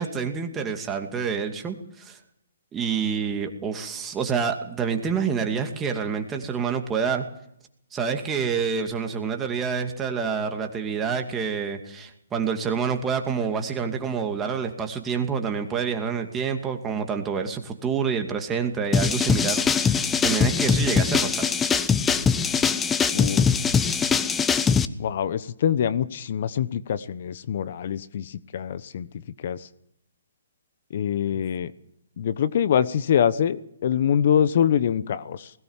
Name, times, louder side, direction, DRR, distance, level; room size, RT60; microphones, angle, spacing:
voice 1, 0.0-2.2 2.7-7.2 7.9-21.5 31.3-31.4, right 6 dB, 15° right, 4 dB, 2.4 m, -27 dB
sound 1, 18.9-24.8, left 6 dB, 10° left, 0.9 m, -22 dB
voice 2, 23.1-23.4 25.0-29.1 29.4-29.7 30.9-31.7 32.2-35.5, left 9 dB, 50° left, 15 dB, 1.0 m, -24 dB
20.5 x 18.0 x 7.4 m, 0.75 s
hypercardioid pair, 145°, 0 cm